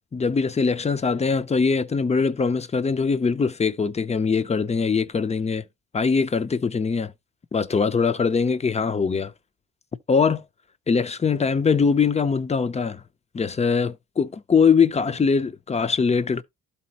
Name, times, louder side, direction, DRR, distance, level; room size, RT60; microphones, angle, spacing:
voice 1, 0.1-5.6 5.9-7.1 7.5-9.3 10.1-10.4 10.9-13.0 13.3-16.4, left 5 dB, 20° left, 0.6 m, -22 dB
12.0 x 4.2 x 2.9 m
cardioid pair, 90°, 30 cm